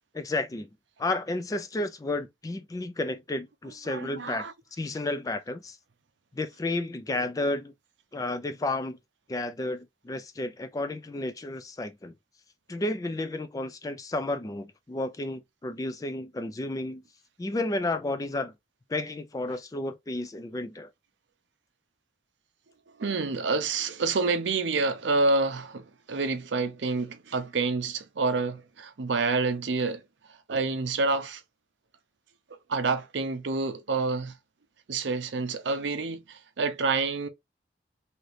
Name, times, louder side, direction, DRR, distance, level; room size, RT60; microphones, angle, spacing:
voice 1, 0.1-0.7 1.0-4.5 4.8-5.8 6.3-7.7 8.1-9.0 9.3-12.1 12.7-17.0 17.4-18.5 18.9-20.9, left 2 dB, 20° left, 0.3 m, -32 dB
voice 2, 3.9-4.5 23.0-30.0 30.5-31.4 32.7-34.3 34.9-37.3, right 3 dB, 80° right, 0.6 m, -28 dB
2.8 x 2.5 x 3.2 m
head